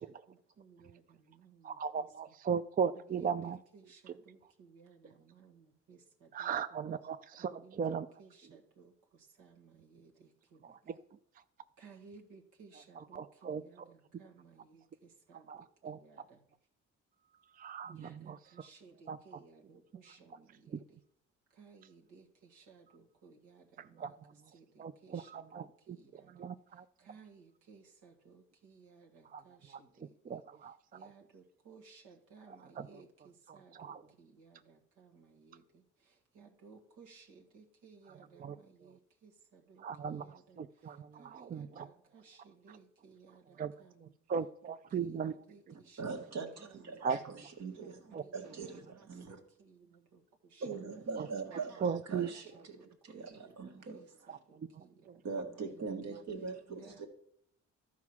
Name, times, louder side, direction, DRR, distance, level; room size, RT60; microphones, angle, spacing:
voice 1, 0.0-2.4 2.9-6.8 7.4-11.0 11.8-16.4 17.9-21.0 21.5-44.2 44.6-47.5 48.1-50.7 51.0-51.1 51.6-56.2 56.7-57.1, right 5 dB, 85° right, 1 dB, 1.7 m, -60 dB
voice 2, 1.6-3.6 6.3-8.1 13.1-13.6 15.5-16.0 17.6-18.4 19.1-19.2 20.7-20.8 24.0-24.1 24.8-26.0 26.4-26.8 29.3-29.4 30.3-30.8 32.8-32.9 33.5-34.0 38.4-38.6 39.8-41.9 43.6-43.7 44.0-45.3 47.0-47.2 48.1-48.2 51.2-51.3 51.8-52.3 54.3-54.4 55.1-55.2, right 6 dB, 30° right, 12 dB, 0.4 m, -37 dB
voice 3, 46.0-49.4 50.6-52.5 53.0-54.0 55.2-57.1, right 4 dB, 60° right, 5 dB, 1.7 m, -42 dB
12.0 x 4.8 x 6.0 m, 0.73 s
cardioid pair, 90°, 30 cm